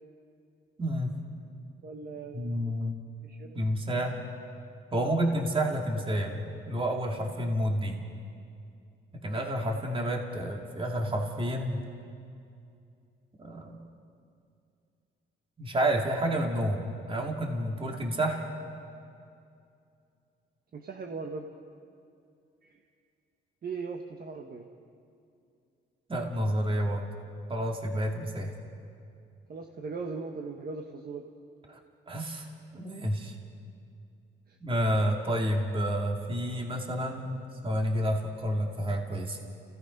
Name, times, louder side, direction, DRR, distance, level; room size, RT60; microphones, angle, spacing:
voice 1, 0.8-1.1 2.3-3.0 3.5-4.2 4.9-8.0 9.1-11.8 13.4-13.8 15.6-18.5 26.1-27.1 27.5-28.5 31.7-31.8 32.1-32.5 32.7-33.4 34.6-39.4, equal, 25° right, 1 dB, 2.3 m, -30 dB
voice 2, 1.8-2.8 3.2-3.5 20.7-21.5 22.6-22.8 23.6-24.7 29.5-31.3 34.5-34.6, right 4 dB, 50° right, 3 dB, 1.3 m, -39 dB
29.5 x 17.0 x 5.4 m, 2.5 s
cardioid pair, 90°, 20 cm